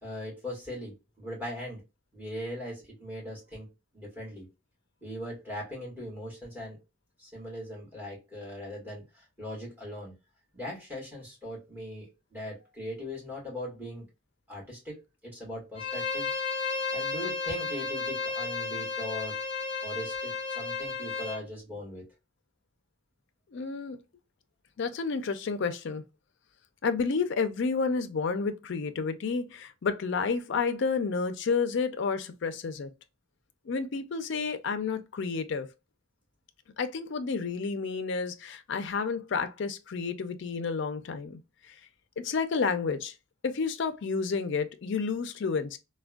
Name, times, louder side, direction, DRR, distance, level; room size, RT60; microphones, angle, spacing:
voice 1, 0.0-1.8 2.1-3.7 3.9-4.5 5.0-6.8 7.2-10.1 10.5-14.1 14.5-16.3 16.7-19.4 19.8-22.1, left 1 dB, 10° right, 1.5 m, -40 dB
Bowed string instrument, 15.8-21.4, left 4 dB, 30° left, 0.7 m, -33 dB
voice 2, 23.5-24.0 24.8-26.0 26.8-32.9 33.7-35.7 36.8-41.4 41.7-41.8 42.2-43.1 43.4-45.8, left 5 dB, 65° left, 0.4 m, -30 dB
3.4 x 2.2 x 2.2 m
head